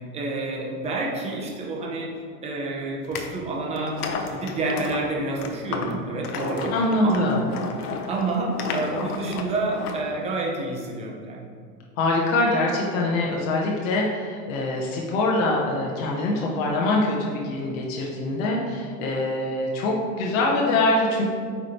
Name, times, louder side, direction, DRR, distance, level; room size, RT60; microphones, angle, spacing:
voice 1, 0.1-2.1 2.4-4.0 4.3-6.7 7.0-7.3 8.1-11.6, right 2 dB, 15° right, -2 dB, 0.8 m, -28 dB
sound 1, 3.0-3.3 3.8-10.1, left 5 dB, 75° left, 1.0 m, -33 dB
voice 2, 6.7-7.4 12.0-21.3, left 2 dB, 60° left, -2 dB, 1.2 m, -24 dB
8.8 x 3.4 x 4.4 m, 2.1 s
supercardioid pair, 155°, 46 cm